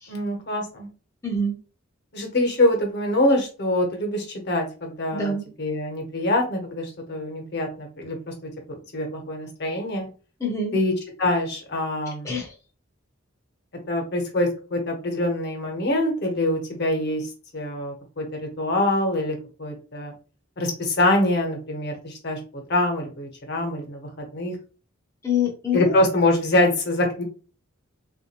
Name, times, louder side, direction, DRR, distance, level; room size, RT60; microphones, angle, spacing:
voice 1, 0.1-0.9 2.1-5.3 5.6-8.3 8.9-10.1 10.7-10.9 11.2-12.4 13.9-20.1 20.6-22.4 22.7-24.6 25.7-27.2, left 1 dB, 55° left, 3 dB, 1.0 m, -24 dB
voice 2, 1.2-1.6 5.1-5.5 10.4-10.8 12.2-12.5 25.2-25.9, left 3 dB, 15° left, -2 dB, 0.5 m, -25 dB
3.3 x 2.5 x 2.8 m, 0.36 s
head